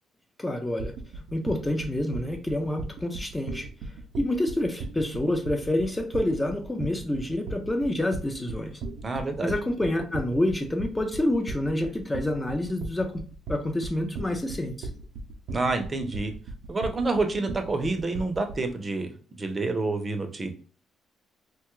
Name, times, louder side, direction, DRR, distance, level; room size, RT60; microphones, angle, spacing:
voice 1, 0.4-0.9 1.3-3.7 4.2-8.8 9.4-13.2 13.5-14.9, left 1 dB, 15° left, 4 dB, 0.5 m, -28 dB
sound 1, 0.8-18.7, right 3 dB, 85° right, 0.5 m, -37 dB
voice 2, 9.0-9.5 15.5-16.3 16.7-19.1 19.4-20.5, right 3 dB, 30° right, 6 dB, 0.6 m, -28 dB
2.8 x 2.3 x 3.0 m, 0.41 s
cardioid pair, 90°, 0 cm